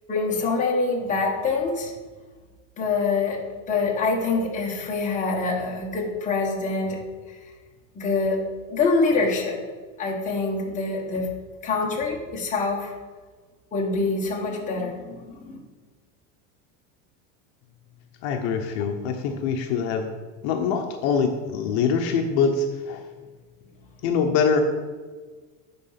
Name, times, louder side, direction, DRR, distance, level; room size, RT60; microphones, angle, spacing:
voice 1, 0.1-1.9 2.8-7.0 7.9-9.6 10.0-11.3 11.6-12.9 13.7-15.6, left 3 dB, 20° left, -2 dB, 1.5 m, -25 dB
voice 2, 18.2-20.1 20.4-23.0 24.0-24.8, left 5 dB, 60° left, 4 dB, 0.9 m, -24 dB
9.5 x 3.8 x 5.8 m, 1.4 s
cardioid pair, 160°, 36 cm